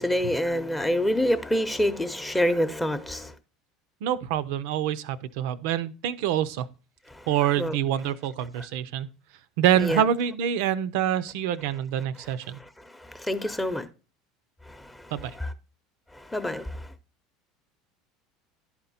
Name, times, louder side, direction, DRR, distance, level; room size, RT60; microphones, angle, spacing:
voice 1, 0.0-3.3 7.1-7.3 7.6-7.8 8.6-8.7 9.8-10.0 12.6-13.9 14.7-15.1 15.4-15.5 16.1-16.9, equal, 10° left, 0.8 m, -27 dB
voice 2, 4.0-6.7 7.3-9.1 9.6-12.6 15.1-15.3, right 10 dB, 65° right, 0.5 m, -26 dB
11.0 x 4.4 x 4.0 m
hypercardioid pair, 75°, 0 cm